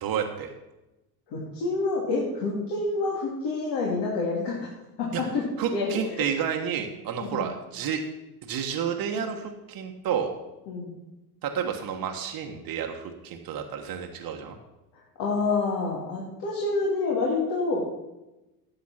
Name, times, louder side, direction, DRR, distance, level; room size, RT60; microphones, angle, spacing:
voice 1, 0.0-0.5 5.1-5.2 5.6-8.0 8.4-10.3 11.4-14.6, right 8 dB, 50° right, 3 dB, 1.4 m, -30 dB
voice 2, 1.3-4.7 5.0-5.5 5.7-5.9 7.2-7.5 10.7-10.9 15.2-17.9, left 3 dB, 60° left, -4 dB, 2.9 m, -27 dB
10.5 x 7.3 x 6.0 m, 1.0 s
hypercardioid pair, 75°, 45 cm